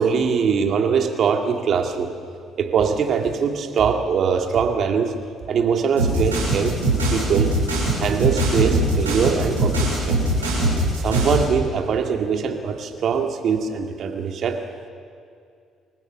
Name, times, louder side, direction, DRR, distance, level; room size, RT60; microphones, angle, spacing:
voice 1, 0.0-2.1 2.6-5.2 5.5-6.8 7.1-7.5 8.0-10.5 11.0-14.6, right 6 dB, 55° right, 4 dB, 2.2 m, -22 dB
sound 1, 6.0-11.4, right 1 dB, 85° right, 6.7 m, -21 dB
26.5 x 15.0 x 7.1 m, 2.3 s
figure-of-eight pair, 50°, 0 cm